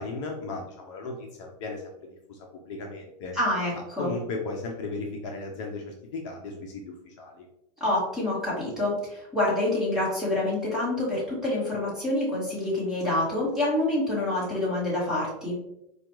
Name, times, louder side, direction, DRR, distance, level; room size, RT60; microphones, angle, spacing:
voice 1, 0.0-1.8 2.3-2.4 2.7-3.3 4.0-7.5, left 3 dB, 45° left, 0 dB, 0.6 m, -35 dB
voice 2, 3.3-4.1 7.8-15.6, left 1 dB, ahead, -8 dB, 1.3 m, -27 dB
4.8 x 2.3 x 3.0 m, 0.83 s
supercardioid pair, 165°, 21 cm